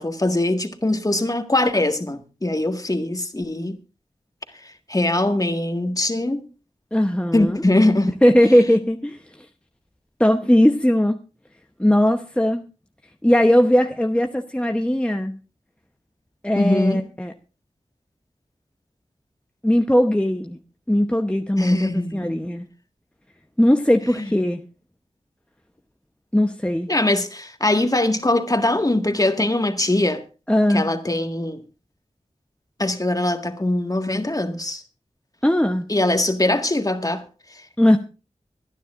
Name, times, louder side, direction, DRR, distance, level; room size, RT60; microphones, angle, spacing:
voice 1, 0.0-3.8 4.5-6.4 7.3-8.1 16.5-17.0 21.6-22.4 24.2-24.3 26.9-30.2 30.7-31.6 32.8-34.8 35.9-37.2 37.5-37.6, left 1 dB, 30° left, 1.7 m, -22 dB
voice 2, 6.9-7.6 8.2-9.5 10.2-11.2 11.8-12.6 13.2-15.4 16.4-17.3 19.6-20.6 20.9-22.7 23.6-24.6 26.3-26.9 30.5-30.9 35.4-35.9 37.8-38.0, equal, 10° left, 0.9 m, -19 dB
24.5 x 10.0 x 2.5 m
wide cardioid pair, 55°, 13 cm